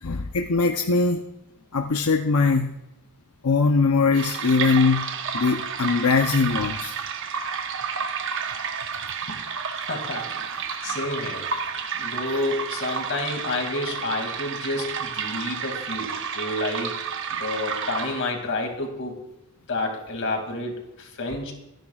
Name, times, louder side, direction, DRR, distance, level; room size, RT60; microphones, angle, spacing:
voice 1, 0.0-1.2 1.7-2.7 3.4-5.1 5.3-6.9, left 4 dB, 85° left, 5 dB, 0.7 m, -21 dB
sound 1, 4.1-18.5, right 6 dB, 55° right, 1.0 m, -31 dB
voice 2, 9.7-11.5 11.9-17.0 17.3-19.1 19.7-21.5, left 2 dB, 60° left, 3 dB, 2.5 m, -30 dB
24.5 x 10.5 x 2.4 m, 0.90 s
head